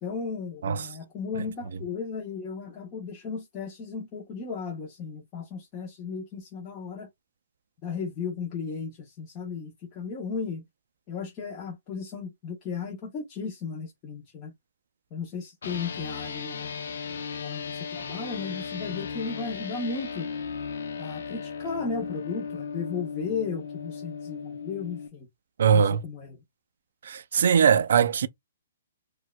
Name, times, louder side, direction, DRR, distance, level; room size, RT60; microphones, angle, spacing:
voice 1, 0.0-7.1 7.8-10.6 11.1-14.5 15.1-17.0 17.4-20.3 21.0-25.3 25.7-26.4, left 5 dB, 15° left, 0.7 m, -35 dB
sound 1, 15.6-25.1, left 6 dB, 65° left, 0.6 m, -36 dB
voice 2, 25.6-26.0 27.0-28.3, right 7 dB, 55° right, 0.3 m, -21 dB
4.4 x 2.2 x 2.2 m
hypercardioid pair, 175°, 0 cm